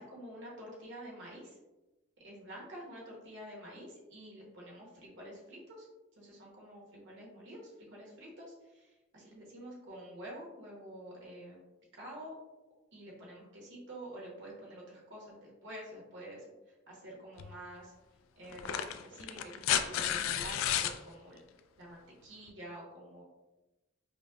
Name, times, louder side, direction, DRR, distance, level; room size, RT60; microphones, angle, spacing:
voice 1, 0.0-1.6 2.2-5.9 6.2-11.6 11.9-12.3 12.9-17.9 18.4-21.4 21.8-23.2, right 1 dB, 60° right, -3 dB, 1.2 m, -48 dB
sound 1, 17.4-17.5 18.5-21.0 22.5-22.6, left 10 dB, 80° left, 0.3 m, -32 dB
5.0 x 2.2 x 2.5 m, 1.1 s
head